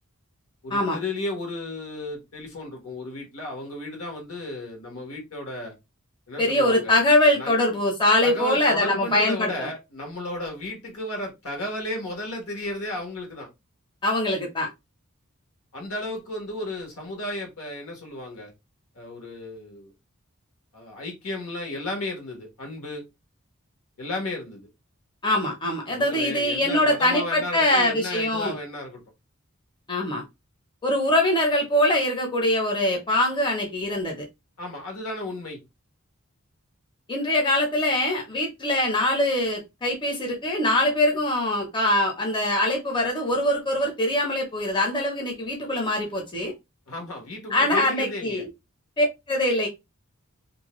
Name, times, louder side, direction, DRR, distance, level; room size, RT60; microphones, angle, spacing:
voice 1, 0.6-5.7 6.3-7.0 7.3-7.5 8.2-13.5 15.7-18.5 18.9-19.9 20.7-23.0 24.0-24.7 25.9-29.0 34.6-35.6 46.9-48.4, left 1 dB, 75° left, 1.2 m, -34 dB
voice 2, 6.4-9.7 14.0-14.7 25.2-28.6 29.9-30.2 30.8-34.2 37.1-46.5 47.5-48.4 49.0-49.7, left 1 dB, 20° left, 0.6 m, -23 dB
2.6 x 2.1 x 2.9 m
head